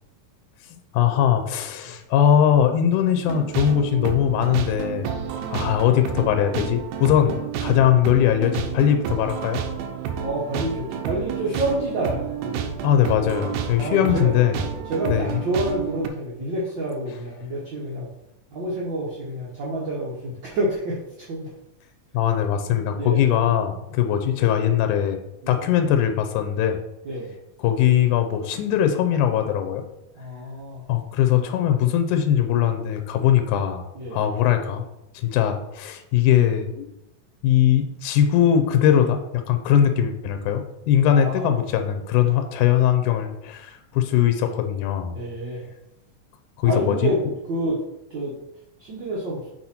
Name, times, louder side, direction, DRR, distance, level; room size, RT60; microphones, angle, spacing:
voice 1, 0.7-5.1 5.5-7.4 7.6-9.6 12.8-14.6 15.1-15.4 22.1-25.2 25.5-26.8 27.6-29.8 30.9-34.8 35.1-36.9 37.4-39.2 39.5-45.2 46.6-47.1, left 10 dB, 80° left, 7 dB, 2.1 m, -20 dB
sound 1, 3.2-16.1, right 8 dB, 85° right, 2.1 m, -30 dB
voice 2, 10.2-12.7 13.8-14.3 14.9-18.1 18.5-21.0 21.3-21.5 23.0-23.3 25.4-25.6 27.0-27.3 30.1-30.8 33.9-34.2 41.1-41.6 45.1-45.7 46.7-47.2 47.4-47.8 48.1-48.3 48.8-49.5, right 1 dB, 70° right, -5 dB, 1.1 m, -28 dB
6.3 x 4.2 x 4.3 m, 0.87 s
omnidirectional pair, 3.6 m